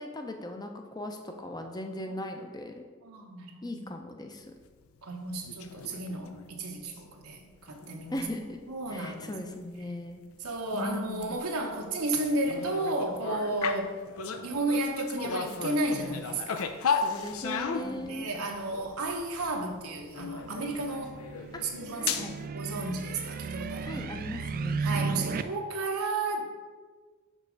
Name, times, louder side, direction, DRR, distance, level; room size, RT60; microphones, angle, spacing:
voice 1, 0.0-2.8 3.6-4.5 8.1-8.6 8.9-10.2 10.7-11.4 13.5-13.9 16.9-18.3 21.5-21.6 22.0-22.4 23.8-25.2, left 1 dB, 20° left, 5 dB, 0.6 m, -38 dB
voice 2, 3.0-3.9 5.0-8.3 8.7-9.3 10.4-13.9 14.4-16.7 17.8-21.2 21.6-24.1 24.8-26.5, right 2 dB, 85° right, 1 dB, 0.9 m, -33 dB
sound 1, 5.3-6.5 7.0-7.3 7.6-9.8 10.1-10.2 10.6-22.5, left 5 dB, 70° left, 0.5 m, -36 dB
sound 2, 20.4-25.4, right 5 dB, 40° right, 0.3 m, -35 dB
5.4 x 4.4 x 6.2 m, 1.4 s
head